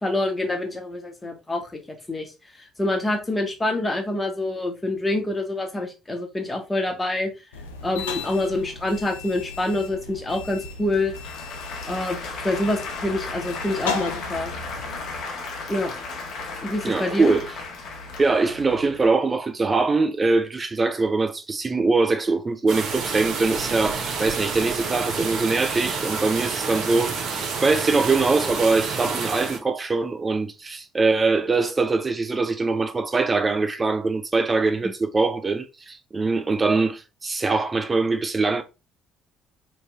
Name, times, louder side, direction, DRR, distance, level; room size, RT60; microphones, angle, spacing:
voice 1, 0.0-2.3 2.6-7.3 7.8-11.1 11.9-14.5 15.7-15.9 16.6-17.3 34.8-34.9, left 1 dB, 15° left, 1.0 m, -26 dB
sound 1, 7.5-15.2, left 5 dB, 80° left, 0.4 m, -36 dB
Applause / Crowd, 10.3-19.1, left 3 dB, 60° left, 0.8 m, -35 dB
voice 2, 16.8-17.5 18.2-38.6, right 3 dB, 30° right, 0.3 m, -23 dB
sound 2, 22.7-29.6, right 5 dB, 55° right, 0.8 m, -29 dB
2.9 x 2.9 x 2.3 m
figure-of-eight pair, 50°, 0 cm